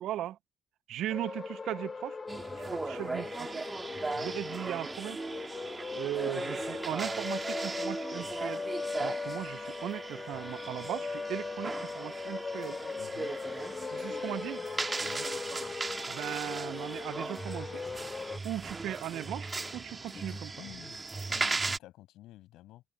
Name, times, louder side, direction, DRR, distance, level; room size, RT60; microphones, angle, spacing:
voice 1, 0.0-0.4 0.9-2.2 2.6-3.6 4.1-5.2 6.0-8.6 9.0-12.8 13.9-14.6 16.1-17.8 18.4-20.6, right 13 dB, 75° right, 0.6 m, -38 dB
sound 1, 1.1-18.4, left 4 dB, 35° left, 1.0 m, -39 dB
sound 2, 2.3-21.8, right 3 dB, 30° right, 2.1 m, -38 dB
voice 2, 13.0-13.3 15.0-15.3 18.6-18.7 20.6-22.8, left 15 dB, 80° left, 7.9 m, -51 dB
sound 3, 13.1-20.4, left 6 dB, 50° left, 1.5 m, -53 dB
supercardioid pair, 55°, 0 cm